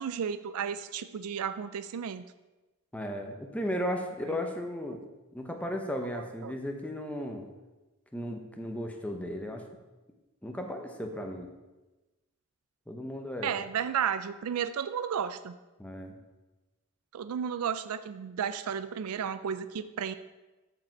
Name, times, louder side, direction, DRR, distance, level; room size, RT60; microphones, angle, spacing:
voice 1, 0.0-2.2 6.1-6.5 13.4-15.6 17.1-20.1, right 8 dB, 90° right, 12 dB, 0.4 m, -33 dB
voice 2, 2.9-5.0 5.3-7.5 8.1-9.6 10.4-11.5 12.9-13.5 15.8-16.1, equal, 5° left, 3 dB, 0.8 m, -35 dB
13.5 x 5.0 x 4.5 m, 1.1 s
head